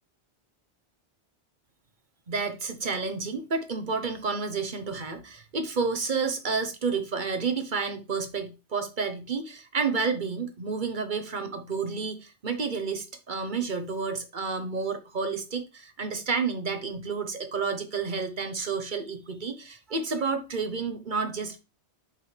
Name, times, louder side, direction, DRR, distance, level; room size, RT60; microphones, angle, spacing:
voice 1, 2.3-21.6, right 4 dB, 45° right, 1.0 m, -30 dB
8.3 x 5.8 x 3.2 m
omnidirectional pair, 1.1 m